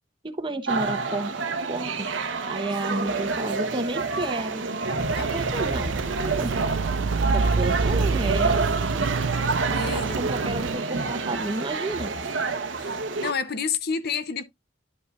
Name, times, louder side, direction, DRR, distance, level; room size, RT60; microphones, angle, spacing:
voice 1, 0.2-1.4 1.7-2.1 2.5-4.7 5.2-6.8 7.3-8.7 9.9-12.1, right 2 dB, 25° right, 1.0 m, -31 dB
sound 1, 0.7-13.3, right 3 dB, 70° right, 1.0 m, -28 dB
Rain, 5.0-10.8, right 4 dB, 90° right, 0.5 m, -27 dB
voice 2, 9.7-10.2 12.7-14.4, left 5 dB, 55° left, 0.8 m, -30 dB
10.5 x 5.4 x 2.4 m
head